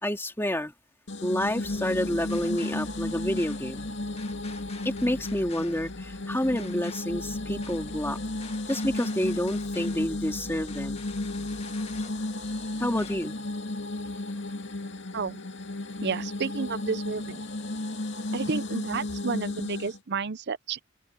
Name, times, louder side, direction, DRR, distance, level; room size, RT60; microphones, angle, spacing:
voice 1, 0.0-0.7 1.2-3.9 4.8-8.2 8.7-11.0 12.8-13.3, left 1 dB, 10° left, 2.8 m, -29 dB
sound 1, 1.1-20.0, left 2 dB, 55° left, 2.4 m, -34 dB
sound 2, 1.4-13.2, left 2 dB, 30° left, 2.0 m, -46 dB
voice 2, 16.0-17.4 18.3-20.8, right 5 dB, 50° right, 0.7 m, -31 dB
head